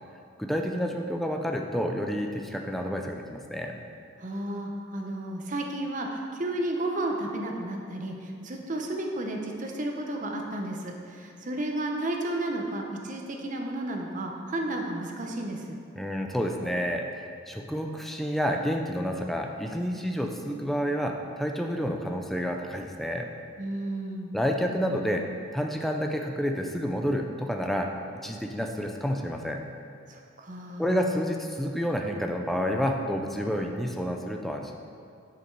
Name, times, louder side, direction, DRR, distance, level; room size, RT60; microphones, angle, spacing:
voice 1, 0.4-3.7 16.0-23.3 24.3-25.3 25.5-28.0 28.2-29.7 30.8-34.8, equal, ahead, 2 dB, 0.4 m, -29 dB
voice 2, 4.2-15.8 23.6-24.3 30.1-31.1, right 1 dB, 40° right, 2 dB, 0.7 m, -32 dB
9.9 x 5.0 x 4.6 m, 2.3 s
head